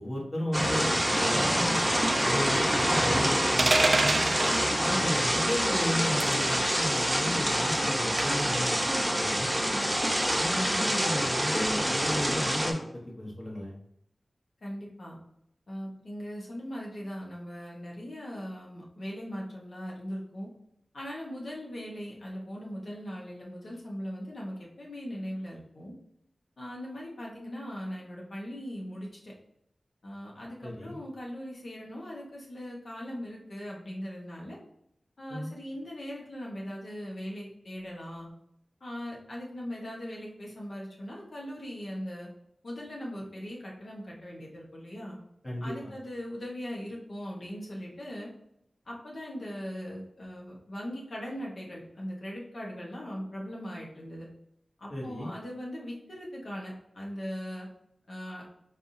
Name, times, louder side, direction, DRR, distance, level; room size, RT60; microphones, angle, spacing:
voice 1, 0.0-1.9 2.2-4.2 4.8-8.8 9.1-9.6 10.3-13.7 30.6-31.0 35.3-35.5 45.4-45.9 54.9-55.3, left 1 dB, 40° left, -3 dB, 1.1 m, -34 dB
sound 1, 0.5-12.7, equal, 10° right, 0.7 m, -26 dB
sound 2, 3.6-4.6 6.2-6.4 8.2-8.5, right 3 dB, 65° right, 0.3 m, -25 dB
voice 2, 14.6-15.2 15.7-20.5 20.9-25.9 26.6-29.3 30.0-34.6 35.2-38.3 38.8-42.3 42.6-45.2 45.6-48.3 48.9-54.3 54.8-57.7 58.1-58.4, equal, 70° left, -3 dB, 1.1 m, -39 dB
4.1 x 3.4 x 2.7 m, 0.75 s
wide cardioid pair, 55°, 0 cm